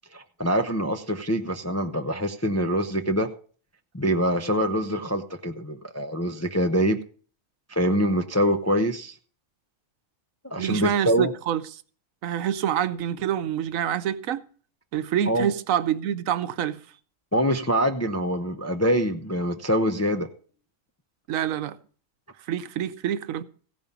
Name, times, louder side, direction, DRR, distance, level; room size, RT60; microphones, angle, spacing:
voice 1, 0.1-3.3 3.9-7.0 7.7-9.2 10.4-11.3 15.3-15.5 17.3-20.3, equal, 25° left, 0.3 m, -24 dB
voice 2, 10.6-11.6 12.2-14.4 14.9-16.8 21.3-21.8 22.5-23.4, right 10 dB, 85° right, 1.1 m, -26 dB
15.5 x 5.3 x 7.1 m
omnidirectional pair, 1.3 m